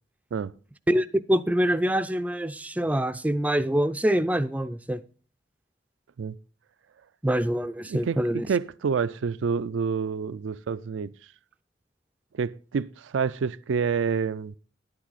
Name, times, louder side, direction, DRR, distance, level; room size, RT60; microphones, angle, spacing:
voice 1, 0.9-5.0 7.2-8.5, equal, 10° right, 0.4 m, -25 dB
voice 2, 7.9-11.1 12.3-14.5, right 5 dB, 85° right, 0.4 m, -28 dB
10.0 x 8.8 x 4.0 m
head